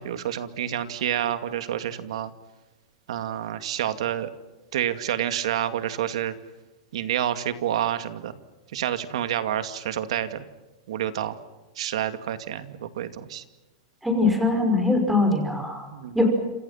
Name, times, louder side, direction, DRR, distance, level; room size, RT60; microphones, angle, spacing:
voice 1, 0.0-2.3 3.1-4.3 4.7-6.3 6.9-8.3 8.7-10.4 10.9-11.4 11.8-13.4 15.9-16.2, right 11 dB, 70° right, 10 dB, 2.4 m, -28 dB
voice 2, 14.0-15.9 16.1-16.3, left 2 dB, 5° right, 4 dB, 5.6 m, -22 dB
28.0 x 27.5 x 5.9 m, 1.1 s
supercardioid pair, 160°, 3 cm